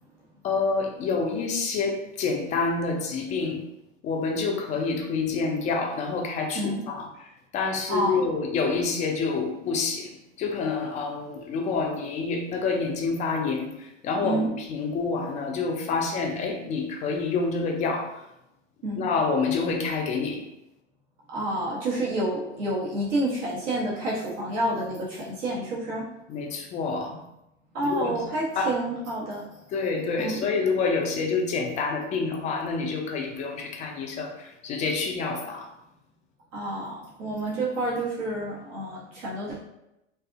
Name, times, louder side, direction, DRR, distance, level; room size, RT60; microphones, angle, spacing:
voice 1, 0.4-3.6 4.0-18.2 19.0-20.4 26.3-27.2 27.8-28.3 28.6-28.7 29.7-35.7, left 4 dB, 20° left, 3 dB, 0.3 m, -28 dB
voice 2, 7.9-8.3 14.2-14.5 18.8-19.0 21.3-26.0 27.7-29.4 30.2-30.4 36.5-39.6, right 1 dB, 70° right, -5 dB, 1.1 m, -29 dB
2.6 x 2.5 x 2.4 m, 0.87 s
hypercardioid pair, 90°, 38 cm